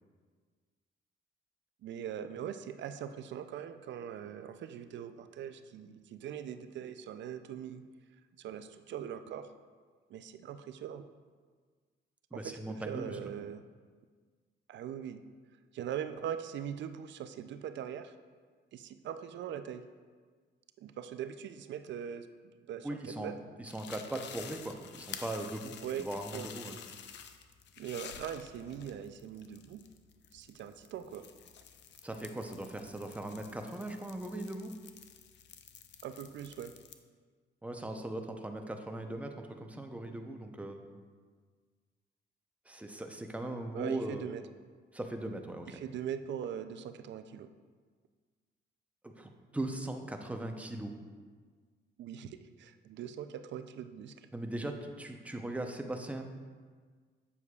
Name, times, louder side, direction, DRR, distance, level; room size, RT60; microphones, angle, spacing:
voice 1, 1.8-7.8 8.4-9.5 10.1-11.0 12.3-13.6 14.7-15.2 15.7-18.1 18.7-19.8 20.8-22.3 22.7-23.4 25.8-26.5 27.8-29.8 30.3-31.3 36.0-36.7 43.7-44.4 45.7-47.5 52.0-54.3, right 9 dB, 65° right, 10 dB, 0.4 m, -41 dB
voice 2, 12.3-13.2 22.8-23.3 23.6-26.8 32.0-34.7 37.6-40.8 42.7-44.3 44.9-45.8 49.0-50.9 54.3-56.2, right 1 dB, 5° right, 4 dB, 0.6 m, -39 dB
sound 1, 23.6-36.9, left 8 dB, 65° left, 0.5 m, -50 dB
8.2 x 7.0 x 2.4 m, 1.6 s
cardioid pair, 90°, 20 cm